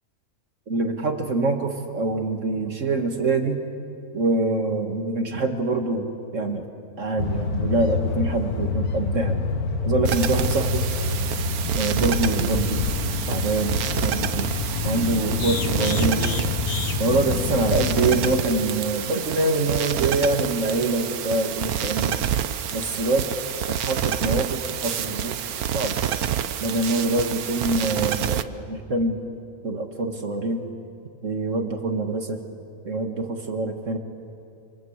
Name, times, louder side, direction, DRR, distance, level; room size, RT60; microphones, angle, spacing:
voice 1, 0.7-3.6 4.1-6.7 7.0-9.4 9.8-10.8 11.8-12.9 13.3-14.5 14.8-16.2 17.0-22.2 22.7-23.2 23.8-25.3 25.7-26.0 26.6-29.2 29.6-30.6 31.2-32.4 32.9-34.0, right 2 dB, 55° right, 5 dB, 2.1 m, -25 dB
sound 1, 7.2-18.4, left 3 dB, 85° left, 1.8 m, -27 dB
sound 2, 10.0-28.4, right 9 dB, 80° right, 1.3 m, -28 dB
27.5 x 27.0 x 8.1 m, 2.6 s
omnidirectional pair, 1.5 m